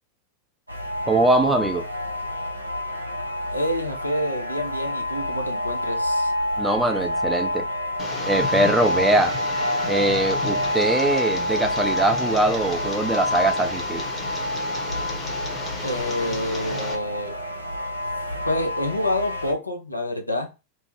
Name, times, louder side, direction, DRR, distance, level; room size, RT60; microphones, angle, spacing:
sound 1, 0.7-19.5, left 1 dB, 85° right, 0.5 m, -28 dB
voice 1, 1.1-1.8 6.6-7.7 8.3-9.3 9.9-14.0, right 2 dB, 10° right, 0.5 m, -22 dB
voice 2, 3.5-6.3 15.8-17.4 18.4-20.5, left 1 dB, 85° left, 0.5 m, -28 dB
Tick, 8.0-17.0, left 3 dB, 20° left, 0.8 m, -34 dB
2.6 x 2.0 x 3.2 m
figure-of-eight pair, 90°, 0 cm